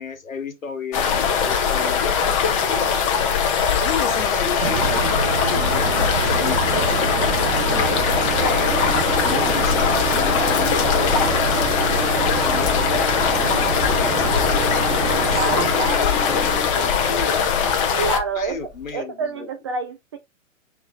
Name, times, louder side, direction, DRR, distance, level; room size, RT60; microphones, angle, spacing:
voice 1, 0.0-3.0 3.7-5.2 5.5-8.9 9.2-16.7 17.0-17.8 18.3-19.5, left 5 dB, 80° left, 1.3 m, -33 dB
sound 1, 0.9-18.2, left 7 dB, 25° left, 0.6 m, -21 dB
sound 2, 4.6-15.8, right 5 dB, 60° right, 0.6 m, -26 dB
Engine, 7.2-18.9, left 1 dB, ahead, 1.4 m, -33 dB
voice 2, 15.4-16.1 18.0-18.6 18.9-20.2, right 4 dB, 20° right, 0.4 m, -27 dB
6.0 x 3.0 x 2.4 m
figure-of-eight pair, 125°, 40 cm